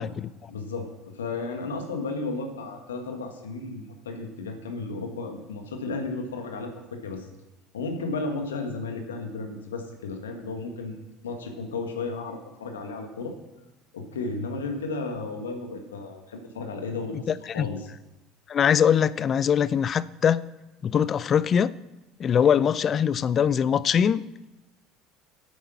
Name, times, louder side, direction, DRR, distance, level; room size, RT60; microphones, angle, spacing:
voice 1, 0.5-7.3 7.7-11.0 11.2-13.3 13.9-17.9, left 3 dB, 80° left, 5 dB, 1.5 m, -34 dB
voice 2, 17.3-17.7 18.5-20.4 20.8-21.7 22.2-24.4, left 8 dB, 40° left, 19 dB, 0.4 m, -22 dB
8.6 x 8.5 x 5.9 m, 1.0 s
hypercardioid pair, 65°, 0 cm